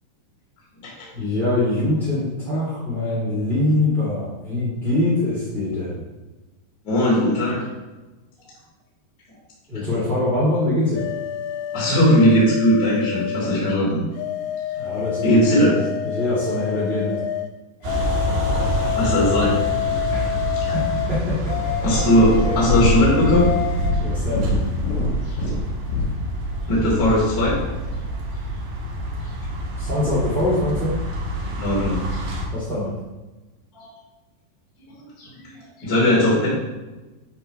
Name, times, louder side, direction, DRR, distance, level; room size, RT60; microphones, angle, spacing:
voice 1, 1.1-6.0 9.7-11.0 14.8-15.7 16.0-17.2 20.1-20.3 20.7-21.9 22.4-22.5 24.0-24.5 29.8-30.9 32.5-32.9, left 1 dB, ahead, -12 dB, 2.1 m, -23 dB
voice 2, 6.8-7.6 11.7-14.0 15.2-15.9 18.6-19.5 20.5-20.7 21.8-23.5 26.7-27.6 31.5-32.2 33.7-33.9 35.2-35.5 35.8-36.5, equal, 25° left, -7 dB, 3.4 m, -19 dB
sound 1, 11.0-13.8 14.2-17.5 17.9-23.9, left 10 dB, 85° left, 2.3 m, -28 dB
sound 2, 17.8-32.4, right 1 dB, 85° right, 3.8 m, -27 dB
Purr, 21.7-28.0 28.8-28.9, left 3 dB, 60° left, 2.3 m, -25 dB
11.5 x 4.6 x 4.5 m, 1.1 s
omnidirectional pair, 5.0 m